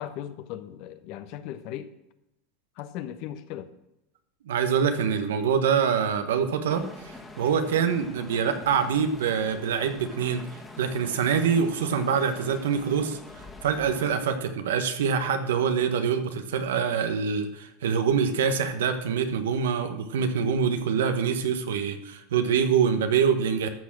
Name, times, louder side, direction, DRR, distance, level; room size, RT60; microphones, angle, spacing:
voice 1, 0.0-1.9 2.8-3.7, left 11 dB, 60° left, 11 dB, 1.0 m, -37 dB
voice 2, 4.5-10.4 10.8-13.2 13.6-23.7, right 7 dB, 90° right, 8 dB, 1.2 m, -25 dB
sound 1, 6.7-14.2, left 2 dB, 10° left, 1.7 m, -45 dB
13.0 x 6.5 x 6.2 m, 0.89 s
supercardioid pair, 120°, 0 cm